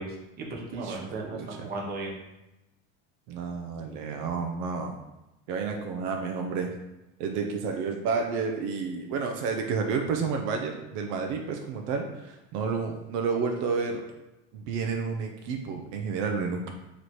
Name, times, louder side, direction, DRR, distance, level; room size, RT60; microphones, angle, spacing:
voice 1, 0.0-2.2, right 2 dB, 30° right, -1 dB, 0.8 m, -36 dB
voice 2, 0.7-1.7 3.3-4.9 5.5-6.7 7.2-14.0 14.5-16.7, right 5 dB, 75° right, 3 dB, 0.6 m, -30 dB
3.1 x 3.1 x 4.0 m, 0.95 s
cardioid pair, 135°, 33 cm